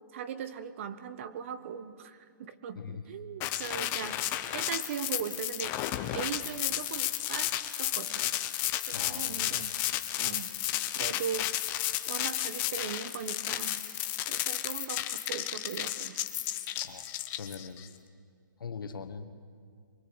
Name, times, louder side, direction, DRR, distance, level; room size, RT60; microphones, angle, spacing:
voice 1, 0.1-4.2 4.5-5.8 6.1-8.4 8.9-9.8 10.2-10.5 10.9-11.5 12.1-13.8 14.3-16.2, right 8 dB, 35° right, 12 dB, 1.1 m, -39 dB
sound 1, 3.4-17.9, left 14 dB, 20° left, 0.8 m, -32 dB
voice 2, 8.9-9.6 16.8-17.0 17.4-17.9 18.6-19.2, left 5 dB, 85° left, 8 dB, 1.9 m, -41 dB
24.0 x 21.5 x 8.0 m, 2.2 s
hypercardioid pair, 165°, 11 cm